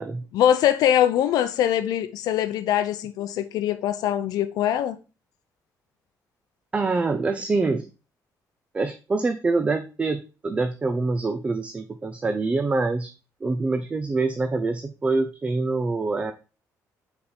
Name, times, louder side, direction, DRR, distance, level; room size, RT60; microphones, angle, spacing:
voice 1, 0.3-5.0, left 10 dB, 85° left, 0.5 m, -22 dB
voice 2, 6.7-7.9 8.7-13.1 13.4-16.3, right 3 dB, 20° right, 0.4 m, -25 dB
5.4 x 4.2 x 4.2 m
cardioid pair, 160°, 6 cm